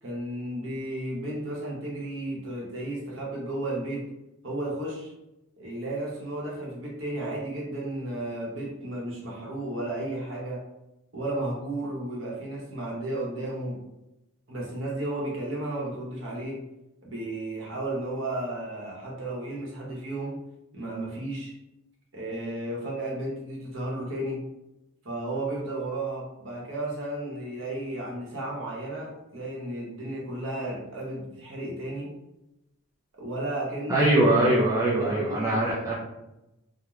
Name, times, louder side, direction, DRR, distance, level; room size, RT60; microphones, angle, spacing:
voice 1, 0.0-4.0 4.4-5.1 5.6-10.6 11.1-13.8 14.5-16.6 17.0-20.4 20.7-21.5 22.1-24.4 25.0-32.1 33.2-34.1 34.8-35.9, right 1 dB, 60° right, -3 dB, 0.8 m, -33 dB
voice 2, 33.9-35.9, right 1 dB, 15° right, -6 dB, 0.4 m, -22 dB
3.0 x 2.1 x 2.3 m, 0.92 s
head